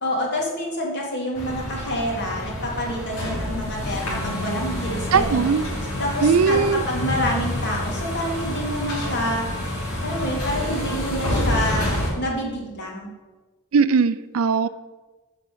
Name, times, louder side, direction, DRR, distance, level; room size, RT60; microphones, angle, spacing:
voice 1, 0.0-5.4 6.0-9.5 10.0-13.1, equal, 50° left, -1 dB, 2.3 m, -27 dB
sound 1, 1.3-12.1, left 1 dB, 75° left, 3.4 m, -28 dB
voice 2, 5.1-5.6 6.2-6.8 13.7-14.7, right 5 dB, 70° right, 15 dB, 0.4 m, -19 dB
7.6 x 5.9 x 6.7 m, 1.2 s
head